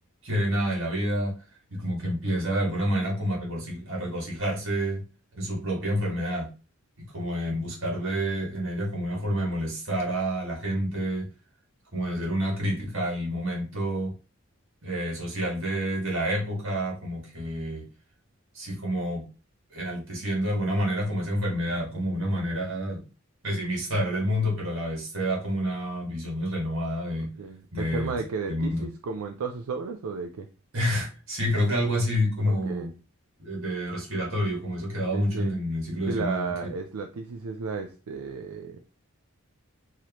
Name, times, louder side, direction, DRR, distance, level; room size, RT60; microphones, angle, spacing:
voice 1, 0.2-1.3 1.7-5.0 5.3-6.5 7.1-11.3 11.9-14.1 14.8-17.8 18.5-19.2 19.7-23.0 23.4-27.3 27.7-28.2 28.5-28.8 30.7-32.9 33.4-36.5, equal, 60° right, -2 dB, 1.8 m, -28 dB
voice 2, 27.4-30.5 32.5-32.9 35.1-35.6 36.1-38.8, right 4 dB, 85° right, 4 dB, 0.5 m, -33 dB
4.8 x 2.9 x 2.9 m, 0.33 s
head